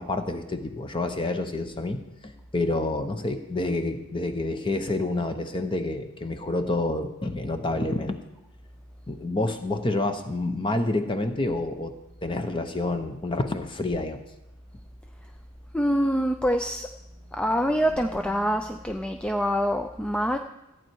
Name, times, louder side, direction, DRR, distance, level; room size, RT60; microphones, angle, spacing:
voice 1, 0.0-8.2 9.1-11.9 12.2-14.2, left 2 dB, 20° left, 7 dB, 0.8 m, -28 dB
voice 2, 15.7-16.9 17.3-20.4, equal, 5° left, 5 dB, 0.4 m, -25 dB
sound 1, 16.7-19.2, equal, 85° left, 3.8 m, -51 dB
14.5 x 9.1 x 4.6 m, 0.96 s
head